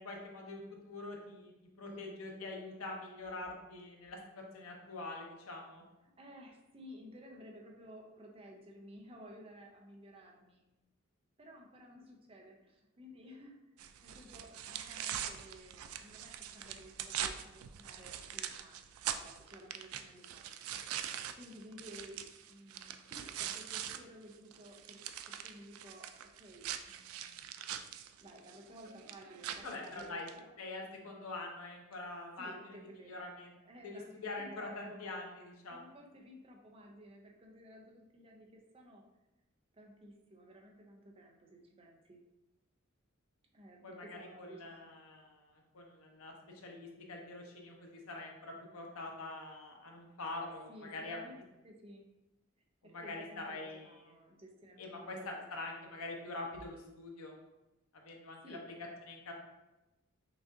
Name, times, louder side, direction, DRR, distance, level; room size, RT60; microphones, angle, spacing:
voice 1, 0.0-1.5 1.8-5.8 29.6-30.3 30.6-32.8 33.0-33.6 33.8-35.8 43.8-51.2 52.8-53.9 54.8-57.3 57.9-58.6 59.1-59.3, left 2 dB, 85° left, 1 dB, 0.8 m, -45 dB
voice 2, 6.0-10.6 11.4-20.5 21.3-25.0 25.3-26.1 26.4-27.5 28.2-30.5 32.4-33.2 33.6-35.0 35.7-39.0 39.7-42.2 43.5-45.0 50.7-52.1 52.8-55.5 58.4-58.6, equal, 25° right, 0 dB, 0.6 m, -54 dB
sound 1, 13.8-24.0 24.3-30.4, right 10 dB, 80° right, 0.3 m, -43 dB
5.9 x 2.4 x 2.7 m, 1.0 s
head